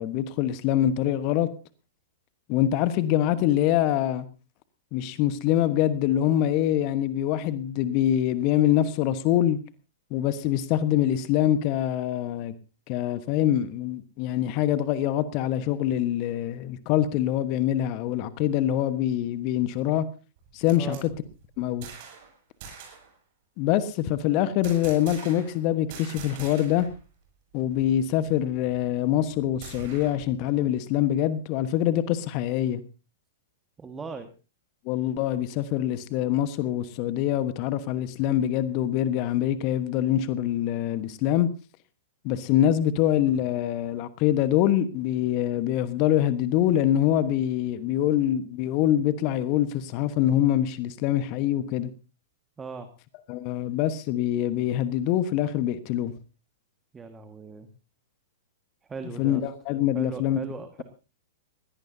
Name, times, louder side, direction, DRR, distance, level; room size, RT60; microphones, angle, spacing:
voice 1, 0.0-1.5 2.5-4.2 4.9-9.6 10.1-12.5 12.9-20.0 20.5-21.1 21.6-21.9 23.6-26.9 27.5-32.8 34.8-41.5 42.2-51.9 53.3-56.1 59.2-60.4, left 12 dB, 40° left, 1.3 m, -24 dB
sound 1, 20.4-22.3 22.6-23.1 24.6-25.6 25.9-27.0 27.2-27.3 27.7-30.3, right 6 dB, 50° right, 7.6 m, -44 dB
voice 2, 20.7-21.0 33.8-34.3 52.6-52.9 56.9-57.7 58.9-59.4 59.9-60.8, right 5 dB, 15° right, 1.7 m, -38 dB
21.0 x 17.5 x 2.8 m
figure-of-eight pair, 105°, 0 cm